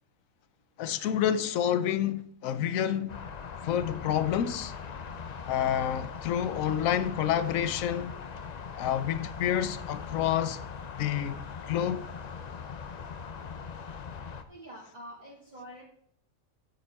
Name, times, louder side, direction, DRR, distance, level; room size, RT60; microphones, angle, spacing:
voice 1, 0.8-3.2 3.6-4.7 5.5-8.1 8.8-10.6 11.0-12.0, left 10 dB, 80° left, 1.0 m, -28 dB
sound 1, 3.1-14.4, left 6 dB, 50° left, 0.5 m, -41 dB
voice 2, 14.5-15.8, equal, 35° right, 1.9 m, -46 dB
9.0 x 8.7 x 3.5 m
omnidirectional pair, 1.4 m